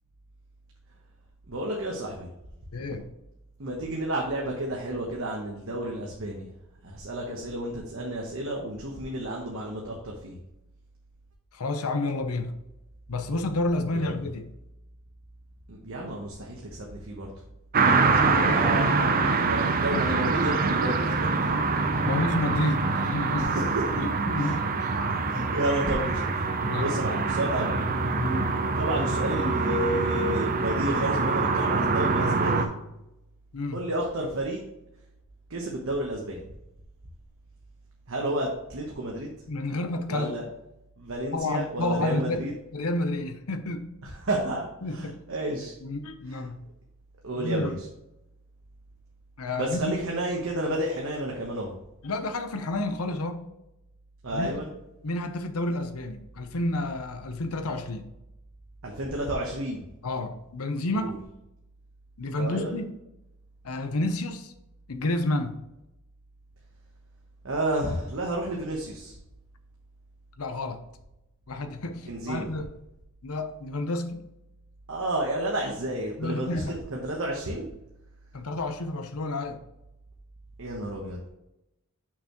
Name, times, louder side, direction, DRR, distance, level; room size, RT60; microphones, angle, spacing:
voice 1, 1.5-2.3 3.6-6.5 6.8-10.4 13.9-14.2 15.7-17.3 18.2-18.9 19.2-21.5 23.3-24.1 24.4-24.6 25.2-26.4 26.7-27.9 28.8-32.7 33.7-34.6 35.5-36.4 38.1-39.3 40.1-40.4 41.0-42.5 44.0-45.7 46.3-46.4 47.2-47.9 49.5-51.7 54.2-54.7 58.8-59.8 60.9-61.1 62.4-62.8 67.4-69.2 72.0-72.5 74.9-77.7 80.6-81.2, right 1 dB, 65° right, -1 dB, 1.1 m, -31 dB
voice 2, 2.7-3.0 11.5-12.5 13.1-14.5 17.9-18.6 19.9-20.0 22.0-23.6 24.0-24.9 25.3-25.5 26.6-27.0 28.2-28.6 33.5-33.9 39.5-40.3 41.3-42.4 42.7-43.9 44.8-45.2 45.8-46.6 47.3-47.8 49.4-50.0 52.0-53.4 54.3-54.5 55.0-58.1 60.0-61.2 62.2-62.9 63.6-64.5 64.9-65.6 70.4-70.8 71.5-72.7 73.2-74.3 76.2-76.8 78.3-79.6, left 2 dB, 80° left, 7 dB, 0.8 m, -30 dB
sound 1, 17.7-32.7, right 4 dB, 40° right, 0.7 m, -25 dB
6.6 x 6.0 x 3.1 m, 0.90 s
head